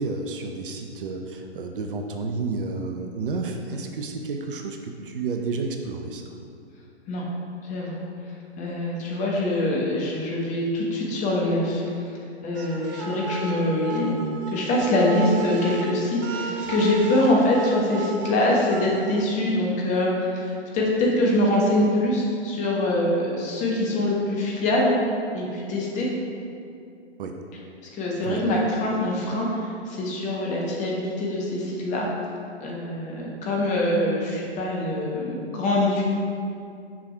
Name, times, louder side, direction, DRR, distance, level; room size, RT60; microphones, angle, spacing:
voice 1, 0.0-6.3 27.2-27.3 28.2-28.4, right 3 dB, 55° right, 4 dB, 0.7 m, -31 dB
voice 2, 7.6-8.1 8.6-11.8 12.4-14.2 14.5-25.0 25.3-26.1 27.9-32.1 32.6-36.0, left 1 dB, 20° left, -3 dB, 1.3 m, -24 dB
sound 1, 12.5-19.2, right 4 dB, 20° right, 0.4 m, -33 dB
6.3 x 5.8 x 4.4 m, 2.4 s
figure-of-eight pair, 115°, 33 cm